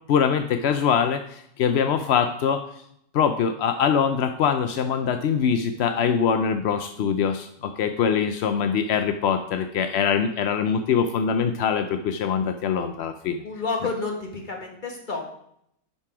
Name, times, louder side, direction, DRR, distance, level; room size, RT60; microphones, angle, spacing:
voice 1, 0.1-2.6 3.1-13.4, left 7 dB, 65° left, 7 dB, 0.7 m, -23 dB
voice 2, 13.4-15.2, left 3 dB, 35° left, 2 dB, 1.7 m, -30 dB
10.5 x 5.4 x 4.8 m, 0.72 s
omnidirectional pair, 1.6 m